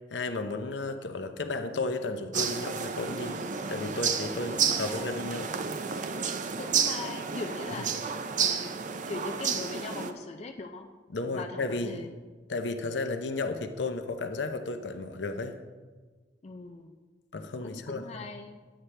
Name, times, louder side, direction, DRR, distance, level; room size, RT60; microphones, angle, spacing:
voice 1, 0.1-5.5 7.8-7.9 11.1-12.1 12.5-15.5 17.3-18.3, left 3 dB, 75° left, 7 dB, 0.8 m, -33 dB
sound 1, 2.3-10.1, right 6 dB, 45° right, 0.6 m, -31 dB
voice 2, 4.5-5.3 6.6-10.9 11.3-12.1 16.4-16.9 17.6-18.6, left 3 dB, 35° left, 3 dB, 0.5 m, -41 dB
11.0 x 8.7 x 3.3 m, 1.4 s
head